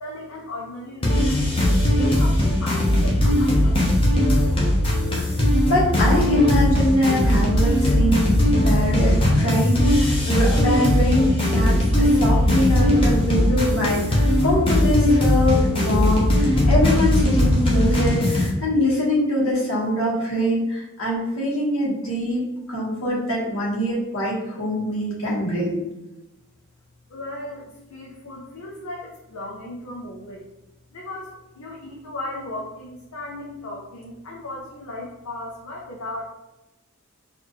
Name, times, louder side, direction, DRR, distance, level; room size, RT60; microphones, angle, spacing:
voice 1, 0.0-4.2 27.1-30.5 30.9-36.2, left 1 dB, 90° left, -3 dB, 0.6 m, -36 dB
sound 1, 1.0-18.5, left 1 dB, 25° left, 0.8 m, -19 dB
voice 2, 5.7-22.4 22.7-25.8, left 1 dB, 70° left, -5 dB, 1.4 m, -23 dB
4.1 x 2.5 x 3.0 m, 0.98 s
head